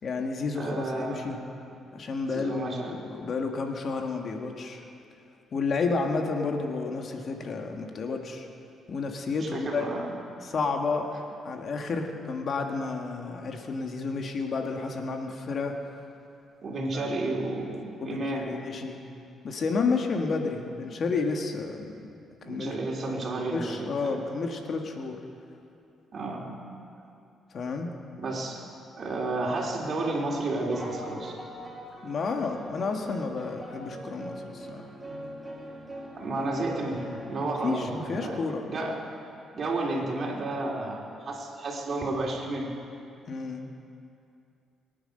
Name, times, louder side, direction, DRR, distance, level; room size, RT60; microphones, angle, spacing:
voice 1, 0.0-1.4 1.9-4.8 5.5-8.5 8.9-9.9 10.4-11.1 11.4-15.7 16.9-17.0 18.0-19.0 19.4-22.1 22.4-22.7 23.1-23.2 23.5-25.2 27.5-27.9 32.0-34.8 37.4-38.7 43.3-43.7, left 4 dB, 50° left, 3 dB, 1.6 m, -31 dB
voice 2, 0.5-1.4 2.3-2.9 9.4-10.1 16.6-18.5 22.4-24.2 26.1-26.4 28.2-28.6 29.0-31.4 36.1-39.0 39.5-42.7, right 2 dB, 50° right, -2 dB, 3.4 m, -32 dB
sound 1, 30.5-38.3, right 1 dB, 15° right, 2.6 m, -42 dB
23.0 x 9.5 x 6.6 m, 2.6 s
cardioid pair, 90°, 0 cm